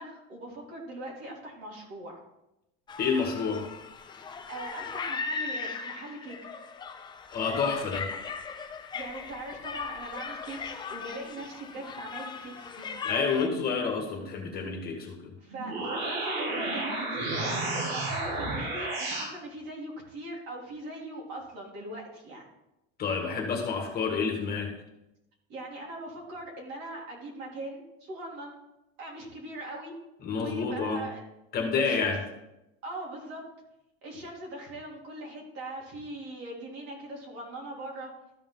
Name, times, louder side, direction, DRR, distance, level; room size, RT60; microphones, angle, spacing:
voice 1, 0.0-2.2 4.5-6.4 8.9-12.9 15.4-22.4 25.5-28.6 29.0-29.9 30.4-31.2 31.7-32.1 32.8-33.4 34.0-38.1, right 1 dB, 55° right, -2 dB, 3.3 m, -41 dB
sound 1, 2.9-13.5, left 5 dB, 15° left, 0.5 m, -38 dB
voice 2, 3.0-3.7 7.3-8.1 13.0-15.3 23.0-24.7 30.2-31.0 31.5-32.2, left 5 dB, 30° left, 1 dB, 1.8 m, -29 dB
sound 2, 15.5-19.3, right 2 dB, 80° right, 2.2 m, -31 dB
13.5 x 5.2 x 3.9 m, 0.90 s
supercardioid pair, 150°, 31 cm